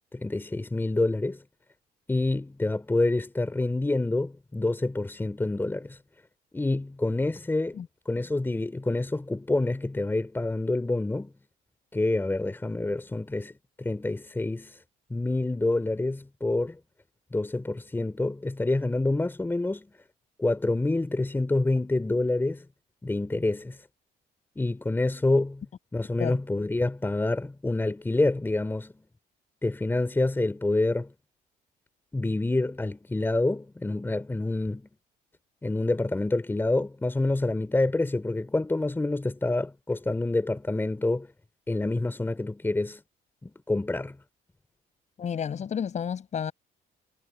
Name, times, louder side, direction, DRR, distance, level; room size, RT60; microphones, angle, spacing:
voice 1, 0.1-1.4 2.1-6.0 6.5-7.8 8.1-11.3 11.9-14.8 15.1-16.8 17.3-19.9 20.4-22.7 23.0-23.8 24.6-25.6 25.9-28.9 29.6-31.1 32.1-34.9 35.6-41.3 41.7-43.0 43.4-44.2, left 2 dB, 10° left, 3.6 m, -27 dB
voice 2, 45.2-46.5, left 7 dB, 45° left, 7.6 m, -31 dB
cardioid pair, 110°, 17 cm